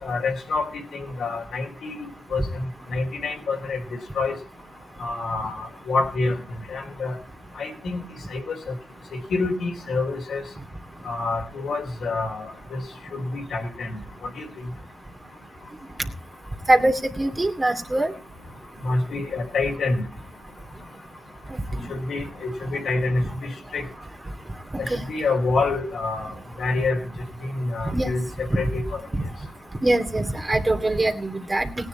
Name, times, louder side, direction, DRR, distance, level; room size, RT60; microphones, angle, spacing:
voice 1, 0.0-3.8 4.1-4.4 5.0-6.4 6.7-7.1 7.5-8.7 9.1-10.4 11.0-12.8 13.1-14.7 18.8-20.0 21.9-23.9 24.8-27.0 27.4-29.0, left 3 dB, 70° left, 2 dB, 3.3 m, -27 dB
voice 2, 16.7-18.1 24.9-25.0 27.8-28.1 29.1-29.2 29.8-31.9, right 2 dB, 25° right, 4 dB, 2.7 m, -23 dB
18.0 x 10.0 x 4.3 m, 0.37 s
supercardioid pair, 45°, 0 cm